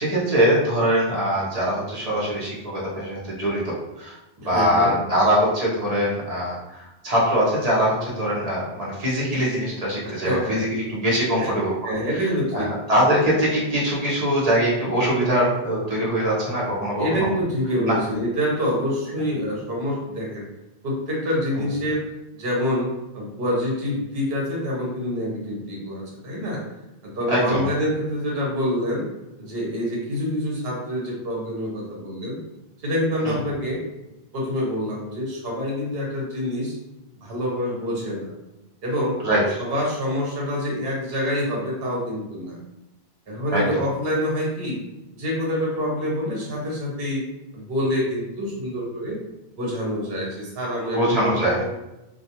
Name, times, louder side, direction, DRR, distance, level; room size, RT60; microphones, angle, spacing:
voice 1, 0.0-4.2 4.4-11.7 12.5-17.3 17.9-18.0 27.3-27.7 39.2-39.4 43.5-43.6 50.9-51.6, equal, 40° right, -6 dB, 0.8 m, -22 dB
voice 2, 4.4-5.0 10.0-10.7 11.3-11.5 11.8-12.7 16.9-20.5 20.8-22.0 22.3-26.6 27.0-29.1 29.4-32.4 32.8-33.8 34.3-36.8 37.1-38.3 38.8-39.2 39.6-42.6 43.3-44.8 45.1-47.2 47.5-49.2 49.6-51.6, equal, 70° right, -3 dB, 1.0 m, -26 dB
2.3 x 2.2 x 2.8 m, 0.94 s
omnidirectional pair, 1.0 m